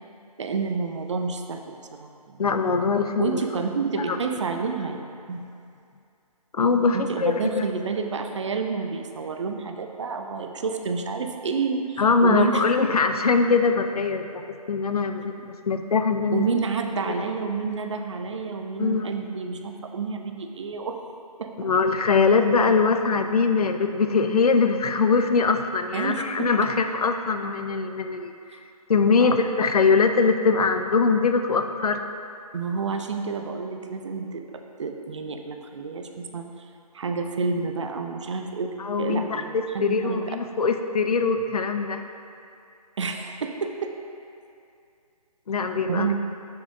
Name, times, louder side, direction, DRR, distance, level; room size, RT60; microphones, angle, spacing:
voice 1, 0.4-2.4 3.2-5.4 6.9-12.6 16.3-21.0 21.4-21.5 25.9-26.5 29.2-29.4 32.5-36.5 36.9-40.2 43.0-43.9 45.9-46.1, right 5 dB, 50° right, 5 dB, 0.5 m, -29 dB
voice 2, 2.4-3.4 3.9-4.2 6.5-7.6 12.0-14.4 14.7-16.4 17.1-17.2 18.8-19.1 21.6-28.3 28.9-32.1 38.8-42.0 45.5-46.1, left 4 dB, 70° left, 7 dB, 0.5 m, -22 dB
7.2 x 6.8 x 2.7 m, 2.5 s
figure-of-eight pair, 155°, 20 cm